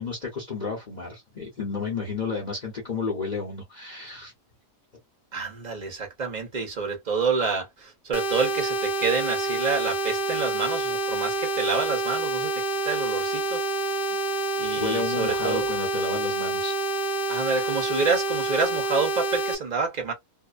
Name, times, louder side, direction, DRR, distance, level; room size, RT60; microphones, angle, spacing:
voice 1, 0.0-4.3 14.8-16.7 17.5-17.7, left 4 dB, 35° left, 0.8 m, -32 dB
voice 2, 5.3-13.6 14.6-15.7 17.3-20.1, right 5 dB, 35° right, 0.7 m, -28 dB
sound 1, 8.1-19.5, right 2 dB, 70° left, 0.5 m, -27 dB
2.7 x 2.0 x 2.4 m
omnidirectional pair, 1.6 m